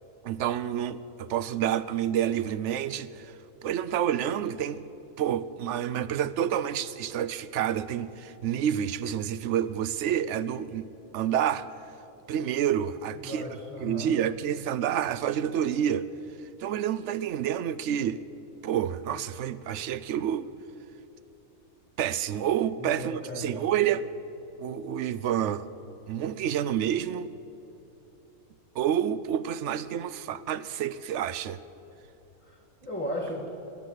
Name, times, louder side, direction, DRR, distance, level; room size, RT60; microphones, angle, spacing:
voice 1, 0.2-3.3 3.6-4.8 5.2-10.9 11.1-11.7 12.3-13.5 13.8-16.1 16.6-18.2 18.6-20.5 22.0-24.1 24.6-25.7 26.1-27.3 28.8-31.6, right 10 dB, 65° right, 16 dB, 0.7 m, -28 dB
voice 2, 13.1-14.1 22.8-23.6 32.4-33.5, equal, 5° left, 0 dB, 1.6 m, -36 dB
21.5 x 10.0 x 6.4 m, 3.0 s
omnidirectional pair, 1.6 m